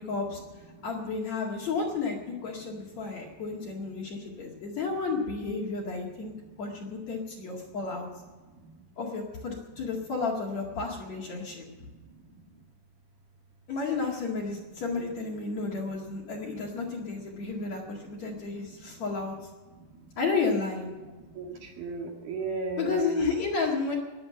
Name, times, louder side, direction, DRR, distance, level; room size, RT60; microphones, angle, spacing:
voice 1, 0.0-8.1 9.0-11.6 13.7-19.3 20.2-20.9 22.8-24.0, left 4 dB, 50° left, -2 dB, 2.8 m, -32 dB
voice 2, 2.7-3.4 3.7-4.6 5.6-7.1 7.5-7.8 8.1-8.8 9.7-10.0 11.3-12.6 14.5-14.7 15.0-15.1 15.5-19.1 19.7-20.2 20.9-23.1, right 3 dB, 65° right, 1 dB, 3.7 m, -43 dB
20.0 x 7.7 x 7.7 m, 1.3 s
omnidirectional pair, 4.9 m